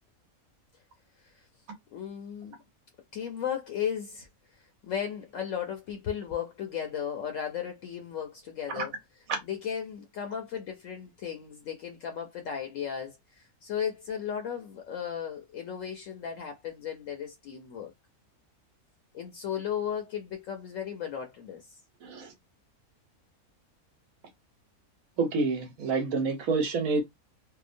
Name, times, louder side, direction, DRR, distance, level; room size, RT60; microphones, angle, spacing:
voice 1, 1.9-2.6 3.1-4.3 4.9-9.0 9.4-17.9 19.1-21.8, left 8 dB, 70° left, 0.9 m, -35 dB
voice 2, 22.0-22.3 25.2-27.0, right 4 dB, 75° right, 1.1 m, -28 dB
2.8 x 2.1 x 2.5 m
omnidirectional pair, 1.5 m